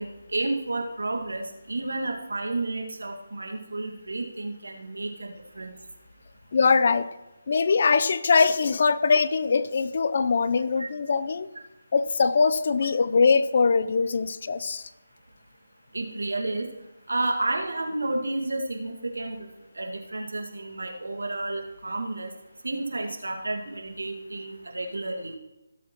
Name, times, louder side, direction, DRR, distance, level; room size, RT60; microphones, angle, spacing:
voice 1, 0.0-5.7 10.8-10.9 15.9-16.7 17.1-19.5 19.8-22.3 22.6-25.3, right 2 dB, 80° right, 2 dB, 1.9 m, -31 dB
voice 2, 6.5-7.1 7.5-11.5 11.9-14.8, left 5 dB, 50° left, 13 dB, 0.6 m, -22 dB
17.5 x 7.5 x 3.0 m, 0.98 s
figure-of-eight pair, 160°, 0 cm